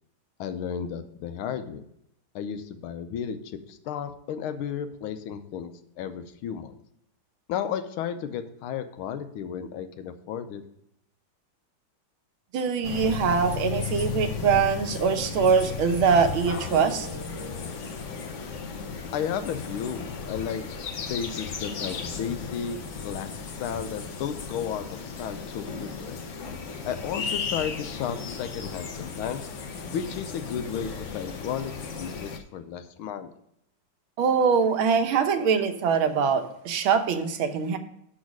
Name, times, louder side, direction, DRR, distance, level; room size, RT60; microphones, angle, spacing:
voice 1, 0.4-1.8 2.3-3.4 3.7-6.7 7.5-10.6 19.1-20.6 21.1-22.8 23.0-23.3 23.6-26.2 26.9-29.5 29.9-31.7 32.0-33.3, left 8 dB, 85° left, 9 dB, 1.6 m, -33 dB
voice 2, 12.5-17.1 34.2-37.8, right 6 dB, 80° right, 7 dB, 1.7 m, -23 dB
sound 1, 12.8-32.4, left 5 dB, 55° left, 0.8 m, -35 dB
6.3 x 6.2 x 6.1 m, 0.76 s
omnidirectional pair, 2.3 m